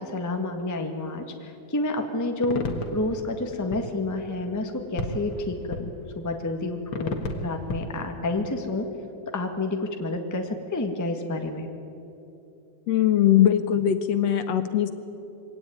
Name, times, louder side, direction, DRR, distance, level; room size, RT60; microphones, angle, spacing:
voice 1, 0.0-2.7 2.9-8.9 9.3-11.7, left 2 dB, 10° left, 4 dB, 0.8 m, -29 dB
sound 1, 2.4-8.1, left 2 dB, 45° left, 2.1 m, -33 dB
voice 2, 12.9-14.9, left 11 dB, 70° left, 10 dB, 1.9 m, -21 dB
24.0 x 17.5 x 9.4 m, 2.9 s
omnidirectional pair, 3.5 m